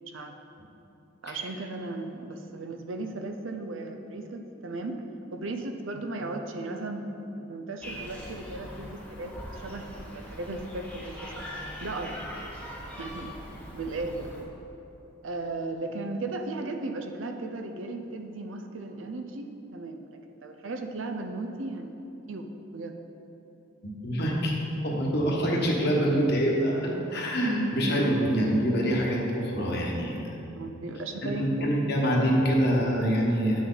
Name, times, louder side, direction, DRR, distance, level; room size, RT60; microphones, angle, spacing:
voice 1, 1.2-5.0 5.3-7.2 7.5-11.5 11.8-12.2 13.0-13.4 13.7-14.5 15.2-21.9 22.3-23.0 25.1-25.2 30.5-31.8, right 2 dB, 75° right, 5 dB, 0.6 m, -36 dB
sound 1, 7.8-14.4, equal, 5° left, 1.0 m, -41 dB
voice 2, 23.8-24.5 24.8-30.2 31.2-33.7, equal, 55° left, -2 dB, 1.3 m, -25 dB
9.0 x 6.3 x 4.0 m, 3.0 s
head